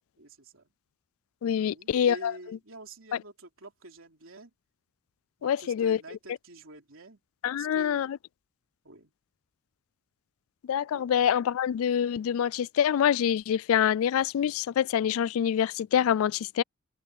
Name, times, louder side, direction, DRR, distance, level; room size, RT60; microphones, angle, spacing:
voice 1, 0.2-0.7 1.6-4.5 5.4-7.2 7.5-8.1 8.8-9.1 10.9-11.1, right 2 dB, 65° right, 3.6 m, -47 dB
voice 2, 1.4-2.3 5.4-6.0 7.4-8.1 10.7-16.6, left 9 dB, 70° left, 0.3 m, -25 dB
head